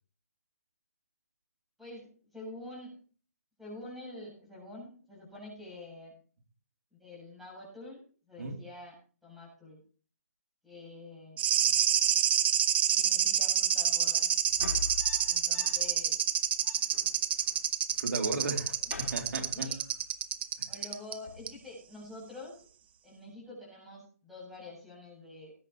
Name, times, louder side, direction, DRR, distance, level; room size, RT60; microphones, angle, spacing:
voice 1, 1.8-2.9 3.6-6.1 6.9-9.8 10.6-11.4 12.9-14.4 15.2-16.2 18.8-18.9 19.5-19.8 20.6-22.7 23.0-25.5, left 2 dB, ahead, -3 dB, 7.5 m, -47 dB
sound 1, 11.4-21.2 21.5-21.6, right 10 dB, 40° right, 1.1 m, -28 dB
sound 2, 14.4-16.0 16.3-16.4 16.6-17.6 17.9-18.3 18.6-20.0 21.3-21.6, left 4 dB, 65° left, 3.3 m, -43 dB
voice 2, 18.0-19.7 20.6-20.7, right 3 dB, 80° right, 4 dB, 2.9 m, -35 dB
20.0 x 9.9 x 3.0 m, 0.40 s
hypercardioid pair, 160°, 8 cm